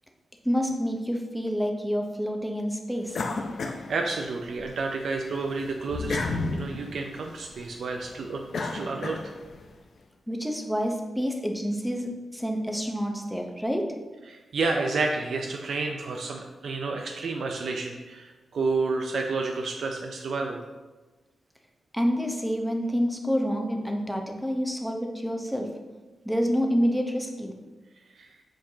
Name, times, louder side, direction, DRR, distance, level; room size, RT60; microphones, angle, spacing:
voice 1, 0.4-3.2 10.3-13.8 21.9-25.7 26.2-27.5, equal, ahead, 2 dB, 0.8 m, -28 dB
sound 1, 3.1-4.7 5.1-9.6, left 3 dB, 70° left, 0.6 m, -33 dB
voice 2, 3.9-6.2 6.5-9.2 14.3-20.6 28.2-28.3, right 3 dB, 75° right, 2 dB, 0.5 m, -30 dB
7.5 x 4.5 x 2.8 m, 1.2 s
cardioid pair, 90°, 0 cm